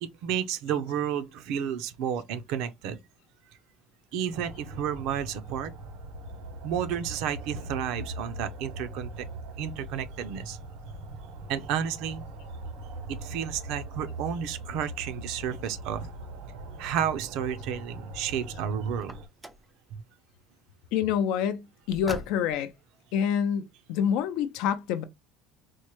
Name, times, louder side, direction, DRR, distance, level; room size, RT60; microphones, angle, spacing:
voice 1, 0.0-3.0 4.1-5.7 6.6-9.3 9.6-10.6 11.5-12.2 13.1-16.1 16.8-19.1, right 9 dB, 65° right, 0.6 m, -31 dB
sound 1, 4.3-19.3, right 2 dB, 85° right, 1.0 m, -41 dB
Car, 19.0-19.7 21.9-22.7, right 1 dB, 5° right, 0.4 m, -42 dB
voice 2, 20.9-22.7 23.1-25.0, left 8 dB, 70° left, 0.5 m, -27 dB
4.4 x 2.1 x 3.0 m
cardioid pair, 165°, 0 cm